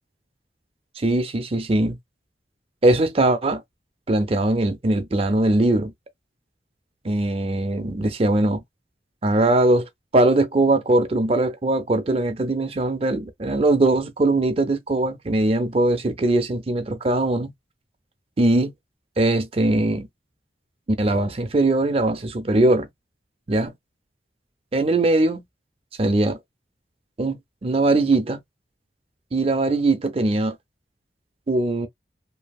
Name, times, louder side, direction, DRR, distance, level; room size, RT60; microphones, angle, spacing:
voice 1, 1.0-2.0 2.8-3.6 4.1-5.9 7.0-8.6 9.2-17.5 18.4-18.7 19.2-20.1 21.0-22.9 23.5-23.7 24.7-25.4 26.0-26.4 27.2-28.4 29.3-30.6 31.5-31.9, right 2 dB, 30° right, 0.5 m, -21 dB
2.7 x 2.6 x 2.3 m
head